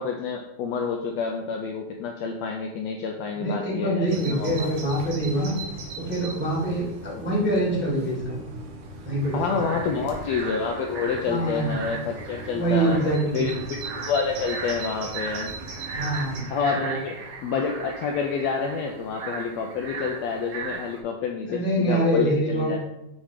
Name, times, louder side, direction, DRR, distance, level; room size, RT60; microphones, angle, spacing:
voice 1, 0.0-4.7 9.3-13.0 13.3-15.5 16.5-22.8, left 5 dB, 85° left, 2 dB, 1.5 m, -28 dB
voice 2, 3.4-5.6 5.9-8.4 9.0-10.0 11.2-11.8 12.5-13.6 15.9-16.9 21.5-22.8, right 1 dB, 5° right, -4 dB, 0.9 m, -25 dB
Bird vocalization bird call bird song, 4.1-16.4, right 3 dB, 80° right, 2.6 m, -39 dB
sound 1, 9.2-21.0, right 4 dB, 65° right, 1.3 m, -38 dB
7.1 x 3.1 x 4.9 m, 0.88 s
omnidirectional pair, 3.5 m